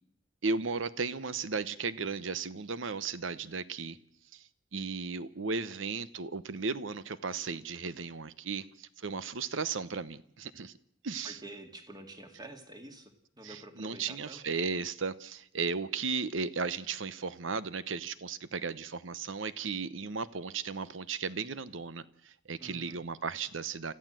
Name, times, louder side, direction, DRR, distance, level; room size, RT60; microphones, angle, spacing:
voice 1, 0.4-4.0 4.3-4.4 4.7-10.8 11.0-11.4 13.4-23.9, right 4 dB, 80° right, 16 dB, 0.9 m, -35 dB
voice 2, 11.2-14.4 22.6-23.0, right 1 dB, 20° right, 6 dB, 2.2 m, -48 dB
29.5 x 14.0 x 7.6 m, 0.70 s
head